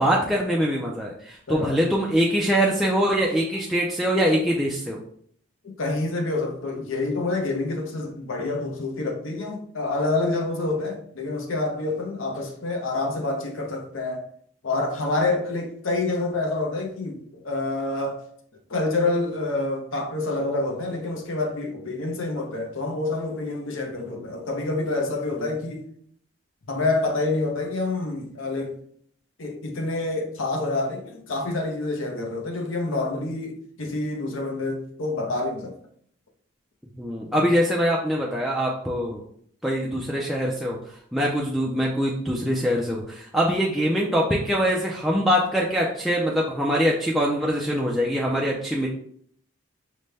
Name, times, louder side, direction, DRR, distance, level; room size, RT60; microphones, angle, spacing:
voice 1, 0.0-5.0 24.0-24.2 37.0-39.2 39.6-40.8 41.1-48.9, equal, ahead, 0.3 m, -23 dB
voice 2, 1.5-1.8 5.6-14.2 14.6-18.2 18.7-25.8 26.6-28.7 29.4-35.7, left 2 dB, 75° left, 0.7 m, -27 dB
5.2 x 2.1 x 3.3 m
head